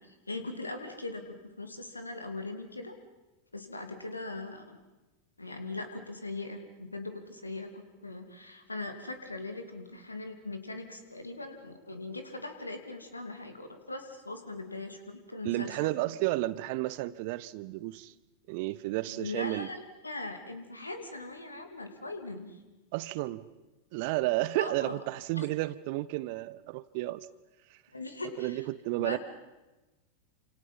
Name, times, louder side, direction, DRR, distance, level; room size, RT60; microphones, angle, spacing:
voice 1, 0.0-2.9 3.5-4.8 5.4-16.0 19.1-22.6 24.6-25.0 25.4-25.5 27.9-28.7 29.0-29.2, left 2 dB, 80° left, 2.8 m, -40 dB
voice 2, 15.4-18.1 18.5-19.7 22.9-23.5 23.9-27.3 28.4-29.2, right 18 dB, 45° right, 0.8 m, -32 dB
29.0 x 27.5 x 5.7 m
figure-of-eight pair, 90°, 0 cm